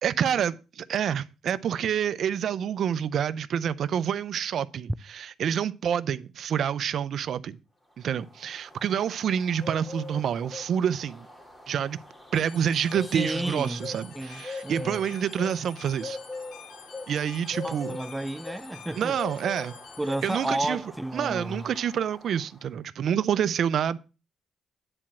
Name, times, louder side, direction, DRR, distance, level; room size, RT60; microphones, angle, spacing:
voice 1, 0.0-7.6 8.0-11.3 11.7-12.0 12.3-16.2 17.1-18.0 19.0-19.7 20.2-20.8 21.1-24.0, right 8 dB, 65° right, 0.6 m, -28 dB
sound 1, 8.0-22.6, left 3 dB, 15° left, 2.7 m, -42 dB
sound 2, 12.3-20.5, left 9 dB, 80° left, 1.4 m, -48 dB
voice 2, 13.1-13.8 14.1-15.0 17.6-19.2 20.0-21.6, right 1 dB, 10° right, 0.4 m, -32 dB
9.9 x 4.4 x 7.4 m
cardioid pair, 90°, 0 cm